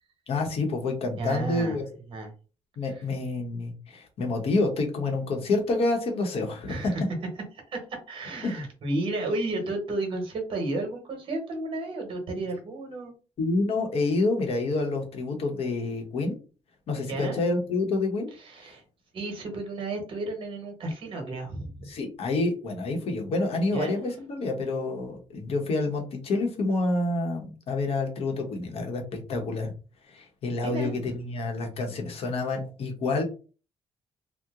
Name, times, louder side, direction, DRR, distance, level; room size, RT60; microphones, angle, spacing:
voice 1, 0.3-1.8 2.8-6.9 8.4-8.6 13.4-16.4 16.9-18.3 21.9-29.0 29.3-29.7 30.1-33.2, left 3 dB, 60° left, 3 dB, 0.9 m, -28 dB
voice 2, 1.2-1.8 2.1-2.3 2.9-3.0 6.7-7.0 7.5-13.1 17.1-17.4 18.4-18.8 19.1-21.9 23.7-24.1 30.6-30.9, right 2 dB, 50° right, 3 dB, 1.2 m, -32 dB
2.9 x 2.1 x 3.6 m, 0.35 s
cardioid pair, 145°, 11 cm